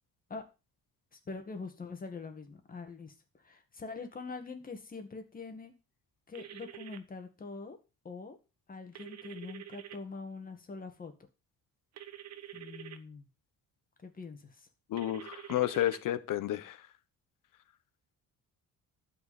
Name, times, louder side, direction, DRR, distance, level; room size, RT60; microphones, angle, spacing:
voice 1, 1.1-5.7 6.3-7.8 8.0-8.4 8.7-11.1 12.5-13.3 14.0-14.7, left 4 dB, 25° left, 6 dB, 2.1 m, -44 dB
sound 1, 6.3-7.0 8.9-10.0 12.0-13.0 15.0-16.0, right 11 dB, 55° right, 1.2 m, -47 dB
voice 2, 14.9-16.8, left 13 dB, 75° left, 14 dB, 1.1 m, -31 dB
12.5 x 4.9 x 7.0 m, 0.29 s
cardioid pair, 165°, 33 cm